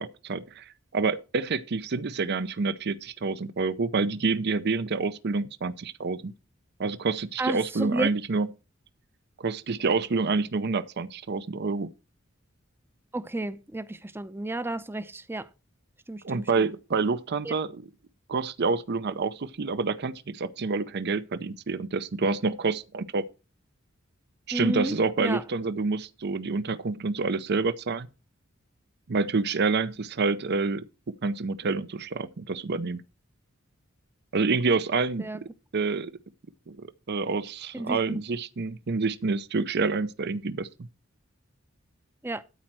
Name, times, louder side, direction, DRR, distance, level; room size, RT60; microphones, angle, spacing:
voice 1, 0.0-6.3 6.8-8.5 9.4-11.9 16.2-17.8 18.3-23.2 24.5-28.1 29.1-30.8 31.2-33.0 34.3-35.3 35.7-36.1 36.7-40.9, right 4 dB, 55° right, 0.6 m, -28 dB
voice 2, 7.4-8.1 13.1-15.5 16.1-16.7 17.4-17.5 24.5-25.4 35.2-35.4 37.7-38.2 42.2-42.4, right 1 dB, 10° right, 0.6 m, -32 dB
13.0 x 4.4 x 6.1 m
head